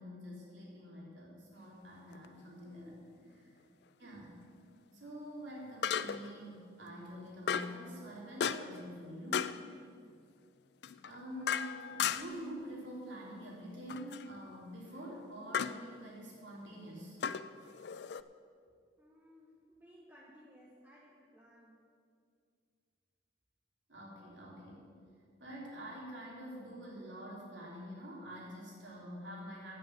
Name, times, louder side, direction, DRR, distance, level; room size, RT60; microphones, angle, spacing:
voice 1, 0.0-2.9 4.0-4.3 4.9-9.6 11.0-17.2 23.9-24.9 25.4-29.8, equal, 80° right, -4 dB, 3.3 m, -46 dB
sound 1, 2.1-2.3 5.8-6.4 7.5-7.8 8.4-8.8 9.3-9.6 10.8-12.5 13.9-14.3 15.5-15.8 17.2-18.2, left 8 dB, 60° left, 0.3 m, -35 dB
voice 2, 2.8-3.4 18.9-21.8, equal, 10° right, -5 dB, 1.1 m, -59 dB
9.1 x 8.9 x 7.6 m, 2.3 s
head